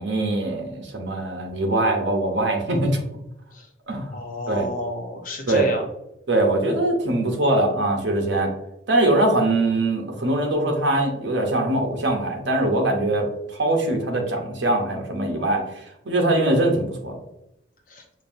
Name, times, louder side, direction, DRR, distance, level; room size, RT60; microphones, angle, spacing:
voice 1, 0.0-3.0 3.9-4.1 4.5-4.7 5.5-5.7 6.3-8.5 8.9-15.6 16.1-17.2, right 1 dB, 70° right, 2 dB, 0.8 m, -22 dB
voice 2, 4.1-5.8 17.9-18.0, left 1 dB, 45° left, 2 dB, 0.7 m, -31 dB
5.2 x 2.6 x 2.6 m, 0.86 s
head